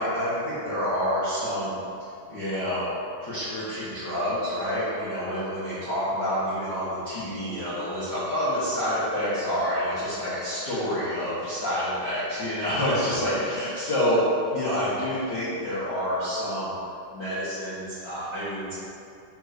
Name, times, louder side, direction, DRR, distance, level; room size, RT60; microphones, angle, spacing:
voice 1, 0.0-1.7 2.3-2.9 3.2-16.7 17.1-18.8, equal, 75° left, -13 dB, 0.9 m, -28 dB
6.7 x 5.2 x 6.0 m, 2.6 s
omnidirectional pair, 4.7 m